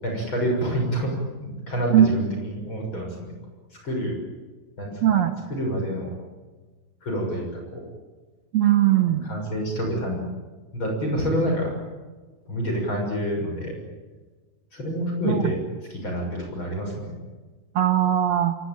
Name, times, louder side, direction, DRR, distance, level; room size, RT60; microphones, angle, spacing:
voice 1, 0.0-3.3 3.7-4.2 4.8-5.1 5.5-6.1 7.0-7.9 9.2-10.3 10.7-11.7 12.5-13.8 14.7-15.6 15.9-17.2, equal, 35° left, 1 dB, 7.2 m, -27 dB
voice 2, 5.0-5.3 8.5-9.3 15.2-15.5 17.8-18.6, right 11 dB, 60° right, 7 dB, 2.3 m, -19 dB
26.5 x 22.5 x 9.0 m, 1.3 s
omnidirectional pair, 4.0 m